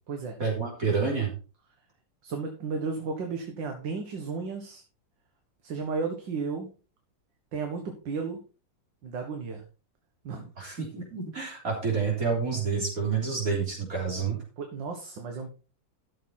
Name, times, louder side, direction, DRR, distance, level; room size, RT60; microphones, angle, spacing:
voice 1, 0.4-1.3 10.6-14.4, right 5 dB, 45° right, -1 dB, 3.9 m, -28 dB
voice 2, 2.2-4.8 5.6-6.7 7.5-8.4 9.0-9.6 10.2-10.5 14.6-15.5, right 4 dB, 75° right, 4 dB, 2.1 m, -33 dB
13.0 x 7.0 x 4.2 m, 0.35 s
omnidirectional pair, 2.0 m